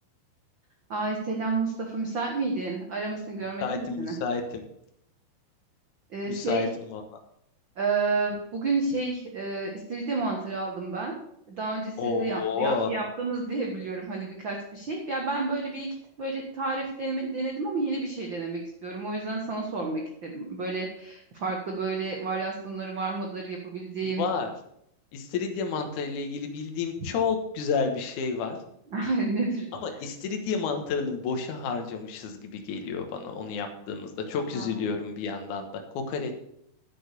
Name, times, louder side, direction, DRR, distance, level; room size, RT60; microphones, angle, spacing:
voice 1, 0.9-4.1 6.1-6.7 7.8-11.1 11.5-15.9 16.2-24.2 28.9-29.7 34.5-34.9, right 3 dB, 85° right, 1 dB, 1.0 m, -30 dB
voice 2, 3.6-4.6 6.3-7.2 12.0-12.9 24.0-24.5 25.1-28.6 29.8-35.7 35.9-36.3, left 5 dB, 65° left, 4 dB, 2.3 m, -30 dB
10.0 x 6.2 x 6.7 m, 0.75 s
omnidirectional pair, 4.4 m